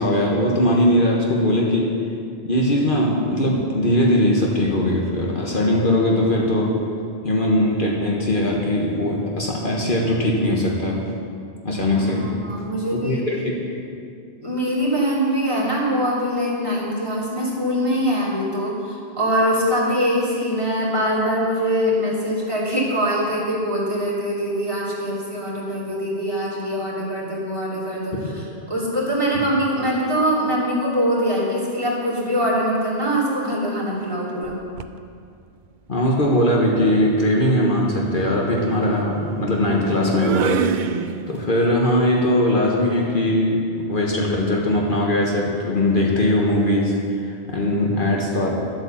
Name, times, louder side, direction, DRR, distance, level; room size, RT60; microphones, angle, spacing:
voice 1, 0.0-2.0 2.4-6.8 7.2-11.0 11.6-12.3 12.9-13.8 35.9-41.0 41.3-48.6, left 1 dB, 55° left, -2 dB, 1.5 m, -20 dB
voice 2, 11.9-13.2 14.4-34.6 47.5-47.7, equal, 30° right, -6 dB, 3.2 m, -23 dB
sound 1, 34.4-35.0 36.4-41.6, right 7 dB, 60° right, 0.6 m, -29 dB
11.5 x 8.4 x 7.1 m, 2.3 s
omnidirectional pair, 1.0 m